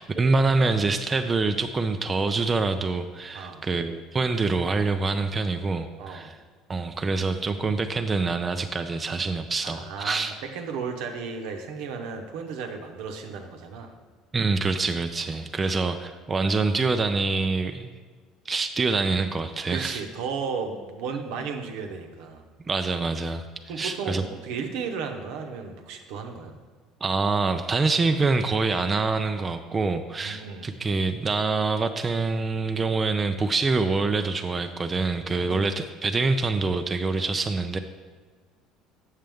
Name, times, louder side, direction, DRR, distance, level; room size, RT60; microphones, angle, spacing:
voice 1, 0.0-6.3 6.7-10.4 14.3-17.9 18.5-20.0 22.6-23.4 23.8-24.2 27.0-37.8, right 3 dB, 25° right, 7 dB, 0.4 m, -25 dB
voice 2, 3.3-3.6 6.0-6.3 9.6-14.0 15.6-15.7 19.7-22.4 23.7-26.5 30.2-30.7 35.4-35.7, right 5 dB, 75° right, 4 dB, 0.9 m, -34 dB
7.6 x 6.4 x 3.5 m, 1.5 s
supercardioid pair, 90°, 0 cm